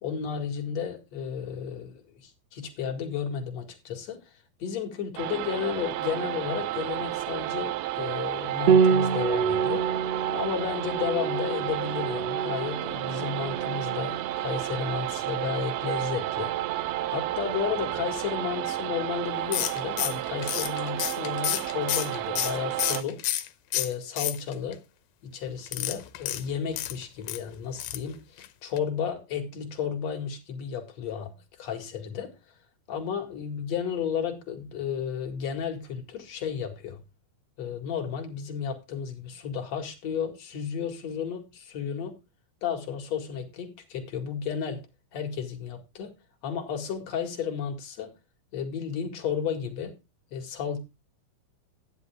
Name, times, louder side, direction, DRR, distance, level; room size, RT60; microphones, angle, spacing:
voice 1, 0.0-4.2 4.6-9.9 10.3-23.2 23.7-24.8 25.2-32.3 32.9-37.0 37.6-42.2 42.6-44.8 45.1-46.1 46.4-48.1 48.5-49.9 50.3-50.8, left 7 dB, 50° left, 2.8 m, -33 dB
sound 1, 5.2-23.0, right 14 dB, 85° right, 2.6 m, -31 dB
Piano, 8.7-18.0, right 6 dB, 65° right, 1.6 m, -29 dB
sound 2, 19.5-23.5 23.7-24.7 25.7-27.4 27.8-28.1 28.4-28.5 28.8-28.9, left 13 dB, 80° left, 2.7 m, -30 dB
13.0 x 10.0 x 3.5 m
omnidirectional pair, 4.3 m